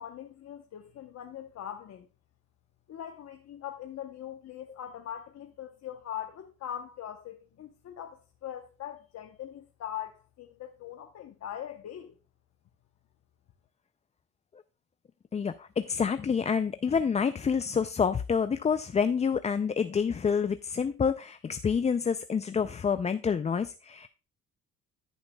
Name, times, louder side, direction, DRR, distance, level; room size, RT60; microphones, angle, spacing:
voice 1, 0.0-2.1 2.9-12.1, left 10 dB, 60° left, 0.9 m, -41 dB
voice 2, 15.3-24.1, left 6 dB, 25° left, 0.3 m, -28 dB
13.5 x 7.1 x 2.2 m
cardioid pair, 90°, 30 cm